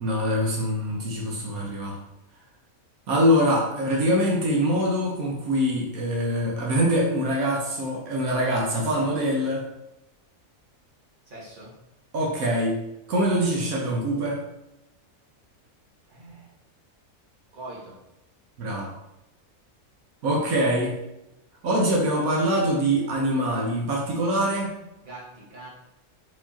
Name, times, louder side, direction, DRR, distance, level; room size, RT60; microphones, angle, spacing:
voice 1, 0.0-2.0 3.1-9.6 12.1-12.8 13.1-14.4 18.6-18.9 20.2-21.0 21.6-24.8, equal, 80° right, -2 dB, 1.4 m, -24 dB
voice 2, 11.3-11.8 16.1-16.5 17.5-18.0 25.0-25.7, right 2 dB, 35° right, -5 dB, 1.6 m, -42 dB
4.6 x 4.1 x 2.8 m, 0.91 s
omnidirectional pair, 1.5 m